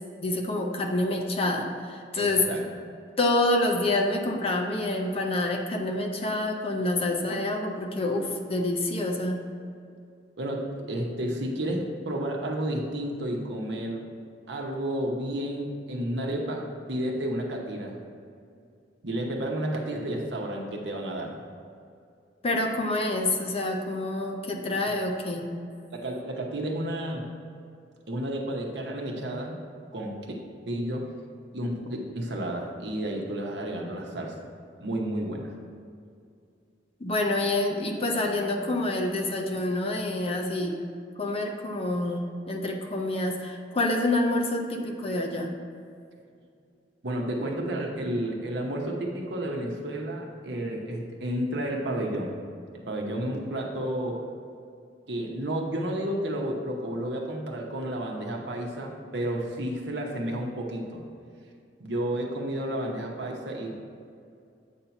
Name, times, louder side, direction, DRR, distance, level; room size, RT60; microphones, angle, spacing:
voice 1, 0.2-2.5 3.2-9.4 22.4-25.5 37.0-40.8 41.2-45.5, left 2 dB, 35° left, 2 dB, 0.6 m, -27 dB
voice 2, 2.1-2.6 10.4-14.0 14.5-18.0 19.0-21.4 25.9-27.3 28.1-29.5 29.9-30.3 30.7-31.1 31.5-34.4 34.8-35.5 47.0-52.4 52.7-54.2 55.1-61.0 61.8-63.7, right 1 dB, 70° right, 0 dB, 0.9 m, -31 dB
8.2 x 2.8 x 5.7 m, 2.4 s
head